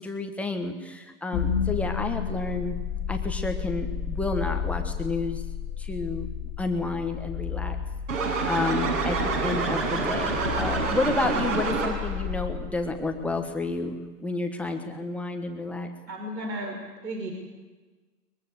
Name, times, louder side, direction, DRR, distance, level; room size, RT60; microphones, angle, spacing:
voice 1, 0.0-2.8 3.1-5.4 5.8-7.8 8.5-15.9, left 3 dB, 5° left, 4 dB, 1.2 m, -30 dB
sound 1, 1.3-13.4, left 7 dB, 20° left, 2.4 m, -32 dB
sound 2, 8.1-12.2, right 4 dB, 50° right, 6.9 m, -27 dB
voice 2, 8.7-10.5 11.2-11.4 15.0-15.1 16.1-16.8 17.0-17.3, right 2 dB, 80° right, 3 dB, 5.4 m, -36 dB
22.5 x 22.0 x 8.1 m, 1.3 s
hypercardioid pair, 145°, 50 cm